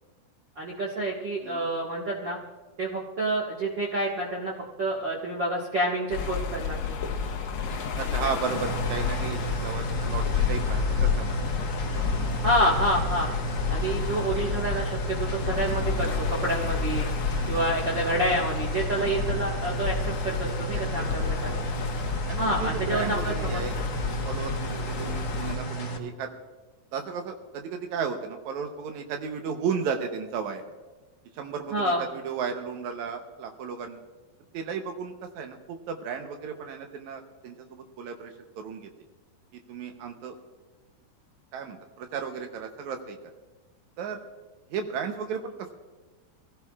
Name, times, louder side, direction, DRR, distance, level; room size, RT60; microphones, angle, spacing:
voice 1, 0.5-2.4 2.8-4.5 4.8-7.0 12.4-13.3 13.7-17.1 17.5-21.6 22.4-23.6 31.7-32.0, right 1 dB, 50° right, -4 dB, 1.4 m, -28 dB
sound 1, 6.1-25.5, left 6 dB, 80° left, 1.4 m, -30 dB
voice 2, 8.0-11.4 14.1-14.2 17.4-17.6 21.0-21.5 22.3-23.8 24.2-26.3 26.9-30.6 31.3-34.0 34.5-38.9 39.5-40.4 41.5-43.2 44.0-44.2 44.7-45.7, right 6 dB, 80° right, 4 dB, 1.7 m, -34 dB
sound 2, 8.5-26.0, right 2 dB, 45° left, 1.6 m, -33 dB
24.0 x 16.5 x 2.4 m, 1.2 s
omnidirectional pair, 4.6 m